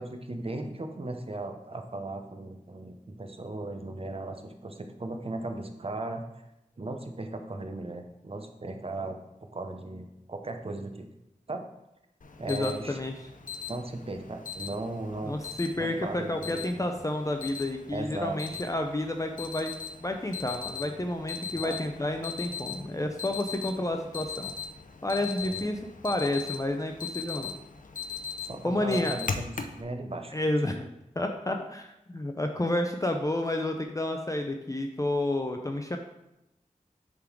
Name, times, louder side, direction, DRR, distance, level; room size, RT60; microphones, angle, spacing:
voice 1, 0.0-6.2 6.8-11.1 11.5-11.6 12.4-13.0 13.7-15.4 15.8-16.9 17.9-18.6 21.5-21.8 25.4-25.7 28.4-30.3, right 2 dB, 45° right, 5 dB, 0.8 m, -37 dB
Alarm, 12.2-29.8, left 6 dB, 70° left, 0.6 m, -40 dB
voice 2, 12.4-13.1 15.2-19.7 20.0-24.5 25.0-27.5 28.6-29.2 30.3-30.9 31.2-36.0, left 1 dB, 25° left, 4 dB, 0.6 m, -30 dB
7.0 x 3.8 x 4.6 m, 0.89 s
wide cardioid pair, 60°, 14 cm